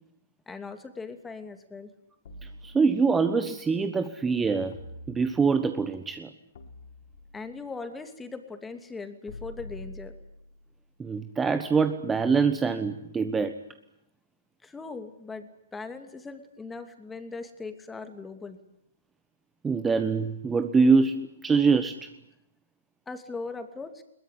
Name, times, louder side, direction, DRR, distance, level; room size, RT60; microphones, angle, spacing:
voice 1, 0.5-1.9 7.3-10.1 14.6-18.6 23.1-24.0, left 4 dB, 10° left, 8 dB, 2.6 m, -39 dB
sound 1, 2.3-3.3 4.7-5.7 6.5-7.6 9.3-10.7, left 1 dB, 60° left, 4.5 m, -45 dB
voice 2, 2.6-4.7 5.1-6.3 11.0-13.5 19.6-22.1, right 5 dB, 10° right, 9 dB, 1.2 m, -24 dB
22.0 x 21.5 x 10.0 m, 0.76 s
figure-of-eight pair, 120°, 0 cm